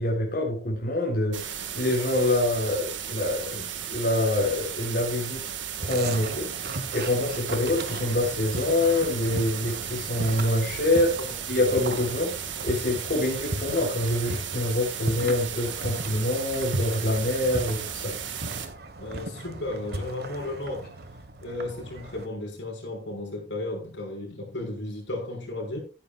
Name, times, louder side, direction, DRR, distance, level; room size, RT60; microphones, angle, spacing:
voice 1, 0.0-5.4 5.8-11.1 11.5-12.3 12.6-18.2, left 1 dB, 55° left, 3.9 m, -26 dB
sound 1, 1.3-18.7, right 9 dB, 85° right, 1.8 m, -35 dB
sound 2, 5.8-22.3, right 1 dB, 60° right, 1.5 m, -37 dB
voice 2, 11.2-12.0 19.0-20.9 21.4-25.8, left 2 dB, 85° left, 5.8 m, -34 dB
15.0 x 10.0 x 2.5 m
head